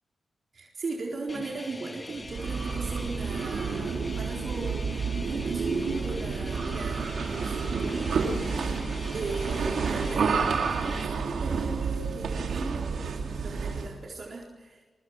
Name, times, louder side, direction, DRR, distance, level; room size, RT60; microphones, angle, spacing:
voice 1, 0.5-14.8, right 3 dB, 60° right, -1 dB, 4.1 m, -38 dB
sound 1, 1.3-11.1, left 2 dB, 30° left, 2.5 m, -43 dB
sound 2, 2.2-14.0, right 5 dB, 85° right, 3.0 m, -30 dB
27.0 x 24.0 x 6.1 m, 1.3 s
cardioid pair, 75°, 0 cm